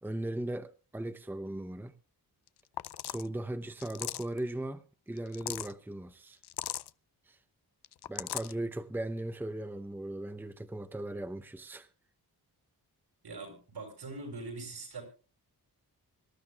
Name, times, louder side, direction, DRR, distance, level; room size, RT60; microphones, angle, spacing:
voice 1, 0.0-1.9 3.0-6.4 7.3-7.4 8.1-11.9, right 1 dB, 5° right, 0.8 m, -38 dB
sound 1, 2.5-2.6 2.8-3.3 3.8-4.4 5.2-5.7 6.4-6.9 7.8-8.5, left 13 dB, 85° left, 0.6 m, -38 dB
voice 2, 13.2-15.0, right 3 dB, 85° right, 7.1 m, -42 dB
25.0 x 13.0 x 2.4 m
wide cardioid pair, 130°, 39 cm